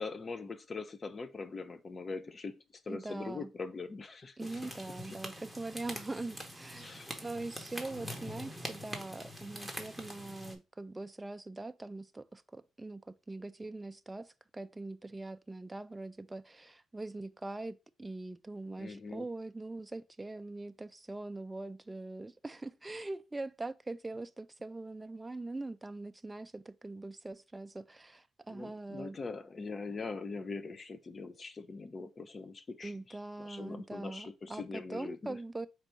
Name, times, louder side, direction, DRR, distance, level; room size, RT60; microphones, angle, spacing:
voice 1, 0.0-4.7 5.1-5.2 6.8-7.1 18.8-19.3 28.5-35.4, left 4 dB, 35° left, 0.5 m, -42 dB
voice 2, 2.9-3.5 4.4-29.2 32.8-35.7, right 2 dB, 15° right, 0.3 m, -42 dB
sound 1, 4.4-10.5, equal, ahead, 1.0 m, -44 dB
4.5 x 2.6 x 4.3 m
cardioid pair, 90°, 0 cm